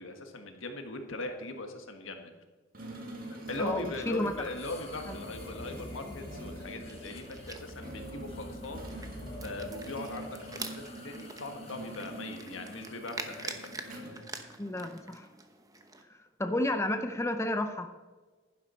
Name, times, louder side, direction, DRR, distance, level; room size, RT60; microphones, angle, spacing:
voice 1, 0.0-2.3 3.5-9.1 9.4-14.5, left 2 dB, 70° left, 5 dB, 1.6 m, -40 dB
sound 1, 2.7-15.0, right 1 dB, 45° right, 2.1 m, -46 dB
voice 2, 3.6-4.5 5.1-5.2 14.6-15.3 16.1-17.9, left 1 dB, 15° left, 6 dB, 0.6 m, -32 dB
sound 2, 4.2-14.0, left 1 dB, 30° left, 1.1 m, -47 dB
sound 3, 6.9-16.0, right 3 dB, 20° right, 0.9 m, -46 dB
11.0 x 10.5 x 4.4 m, 1.3 s
head